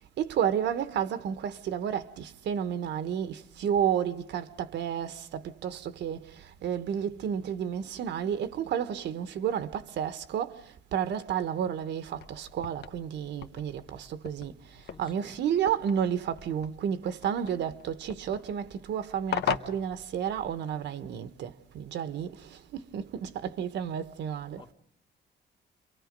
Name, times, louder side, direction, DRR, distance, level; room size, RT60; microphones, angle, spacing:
voice 1, 0.2-24.7, right 8 dB, 70° right, 1.2 m, -31 dB
sound 1, 12.0-20.7, left 9 dB, 65° left, 1.2 m, -40 dB
voice 2, 14.8-15.4 24.6-24.7, left 4 dB, 25° left, 1.1 m, -53 dB
29.5 x 24.0 x 5.3 m
cardioid pair, 150°, 19 cm